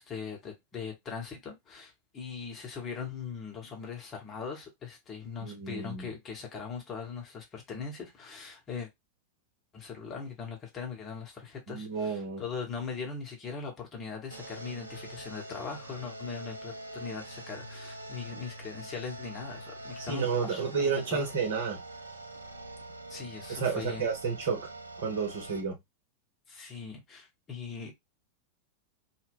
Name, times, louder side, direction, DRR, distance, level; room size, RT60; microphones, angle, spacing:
voice 1, 0.0-8.9 9.7-21.3 23.1-24.1 26.5-28.0, left 5 dB, 25° left, 1.0 m, -40 dB
voice 2, 5.4-6.1 11.7-12.4 20.0-21.8 23.5-24.6 25.0-25.8, right 5 dB, 55° right, 0.9 m, -31 dB
sound 1, 14.3-25.6, right 2 dB, 80° right, 0.5 m, -44 dB
2.2 x 2.2 x 3.4 m
figure-of-eight pair, 90°, 0 cm